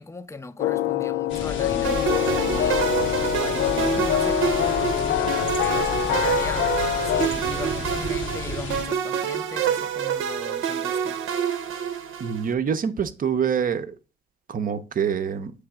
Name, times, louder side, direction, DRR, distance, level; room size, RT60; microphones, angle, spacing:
voice 1, 0.0-11.2, left 3 dB, 15° left, 0.6 m, -38 dB
sound 1, 0.6-7.3, left 12 dB, 65° left, 0.4 m, -25 dB
sound 2, 1.3-8.8, left 3 dB, 85° left, 1.3 m, -33 dB
sound 3, 1.8-12.5, right 8 dB, 80° right, 0.7 m, -27 dB
voice 2, 12.2-13.9 14.5-15.5, right 7 dB, 45° right, 0.7 m, -25 dB
7.8 x 3.4 x 4.8 m
cardioid pair, 90°, 20 cm